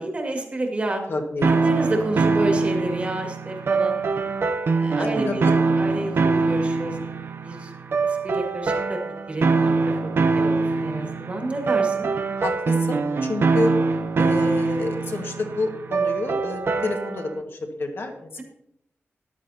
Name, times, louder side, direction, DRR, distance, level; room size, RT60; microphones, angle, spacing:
voice 1, 0.0-1.0 1.4-4.0 4.7-5.5 5.8-7.0 7.4-7.7 8.0-9.0 9.3-12.1, right 2 dB, 30° right, 1 dB, 2.0 m, -29 dB
voice 2, 1.1-1.5 5.0-5.4 12.4-13.0 13.2-13.7 14.2-18.4, left 3 dB, 55° left, 4 dB, 1.6 m, -29 dB
sound 1, 1.4-17.3, right 4 dB, 55° right, 0.6 m, -23 dB
14.0 x 11.0 x 2.8 m, 0.77 s
wide cardioid pair, 175°, 5 cm